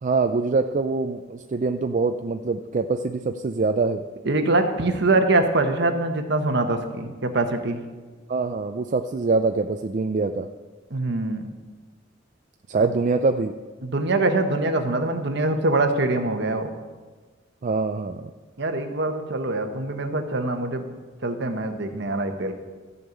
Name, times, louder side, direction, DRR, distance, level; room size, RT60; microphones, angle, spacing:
voice 1, 0.0-4.0 8.3-10.5 12.7-13.5 17.6-18.3, right 4 dB, 40° right, 7 dB, 0.4 m, -24 dB
voice 2, 4.2-7.8 10.9-11.4 12.8-12.9 13.8-16.7 18.6-20.8 21.2-22.5, right 2 dB, 65° right, 6 dB, 1.2 m, -23 dB
13.5 x 5.5 x 8.0 m, 1.4 s
head